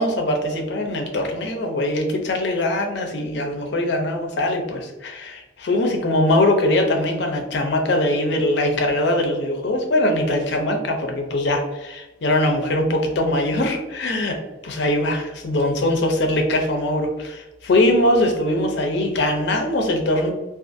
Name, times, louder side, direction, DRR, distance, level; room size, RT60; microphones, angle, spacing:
voice 1, 0.0-14.4 14.6-20.3, left 1 dB, 65° left, 3 dB, 0.5 m, -21 dB
2.4 x 2.4 x 2.5 m, 1.0 s
head